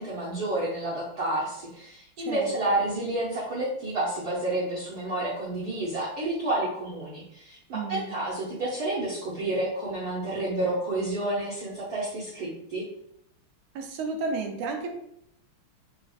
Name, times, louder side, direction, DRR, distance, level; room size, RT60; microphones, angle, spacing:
voice 1, 0.0-12.8, right 1 dB, 65° right, -7 dB, 1.0 m, -30 dB
voice 2, 2.2-2.5 7.7-8.2 13.7-14.9, right 4 dB, 80° right, 3 dB, 1.4 m, -32 dB
4.3 x 2.3 x 2.4 m, 0.75 s
omnidirectional pair, 2.4 m